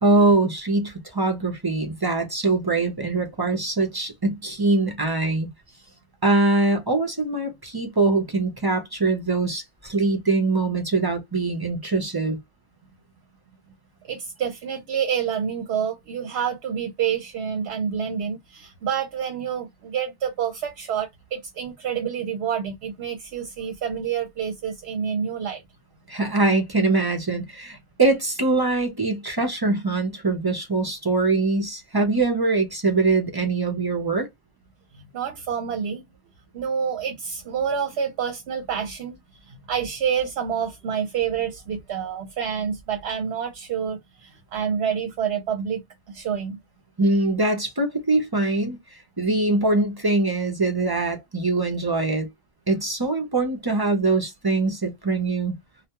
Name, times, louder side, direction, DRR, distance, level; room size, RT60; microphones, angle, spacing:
voice 1, 0.0-5.5 6.2-12.4 26.1-34.3 47.0-52.3 52.7-55.5, right 3 dB, 30° right, 0.5 m, -23 dB
voice 2, 14.1-25.6 34.9-36.0 36.5-39.2 39.5-46.6, right 7 dB, 65° right, 0.8 m, -28 dB
2.2 x 2.2 x 2.8 m
omnidirectional pair, 1.2 m